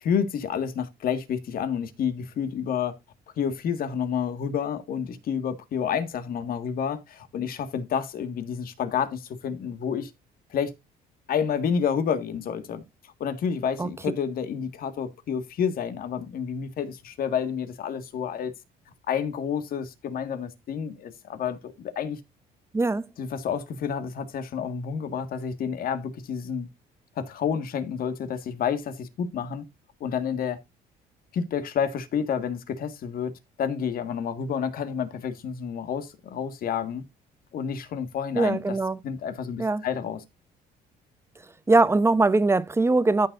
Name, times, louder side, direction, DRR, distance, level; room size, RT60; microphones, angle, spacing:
voice 1, 0.0-2.9 3.4-10.1 10.5-10.7 11.3-12.8 13.2-18.5 19.1-22.2 23.2-26.7 27.2-29.6 30.0-30.6 31.3-33.3 33.6-37.0 37.5-38.8 39.0-40.2, left 7 dB, 60° left, 1.7 m, -29 dB
voice 2, 22.7-23.1 38.3-39.0 39.6-39.8 41.7-43.3, right 3 dB, 15° right, 0.8 m, -21 dB
14.0 x 6.7 x 2.5 m
cardioid pair, 110°, 17 cm